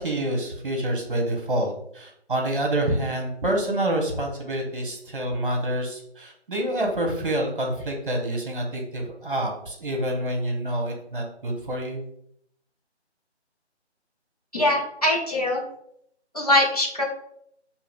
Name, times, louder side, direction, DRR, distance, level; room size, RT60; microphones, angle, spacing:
voice 1, 0.0-12.0, right 1 dB, 50° right, 2 dB, 1.0 m, -27 dB
voice 2, 14.5-15.6 16.3-17.0, left 1 dB, 35° left, -2 dB, 0.6 m, -22 dB
6.2 x 2.8 x 2.4 m, 0.71 s
figure-of-eight pair, 155°, 34 cm